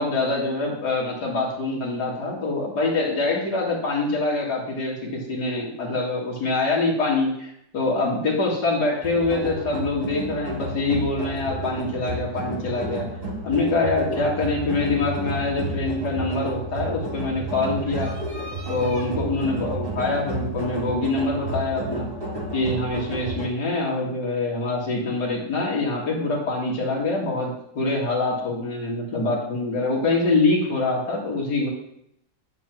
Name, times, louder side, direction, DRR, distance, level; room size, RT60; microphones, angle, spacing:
voice 1, 0.0-7.5 7.7-13.1 13.4-18.2 18.7-22.1 22.5-31.7, left 3 dB, 70° left, -3 dB, 2.6 m, -25 dB
sound 1, 9.0-23.5, right 2 dB, 35° right, 1.8 m, -31 dB
9.9 x 4.5 x 6.0 m, 0.77 s
omnidirectional pair, 1.8 m